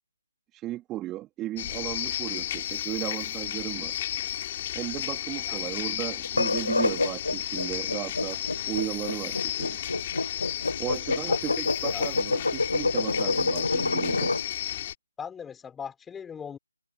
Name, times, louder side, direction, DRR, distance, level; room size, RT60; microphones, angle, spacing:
voice 1, 0.5-4.0 4.7-9.8 10.8-14.3, right 15 dB, 10° right, 3.2 m, -35 dB
sound 1, 1.6-14.9, left 12 dB, 25° left, 5.2 m, -33 dB
sound 2, 6.2-14.4, left 3 dB, 70° left, 1.2 m, -27 dB
voice 2, 15.2-16.6, left 7 dB, 5° left, 5.5 m, -39 dB
figure-of-eight pair, 150°, 0 cm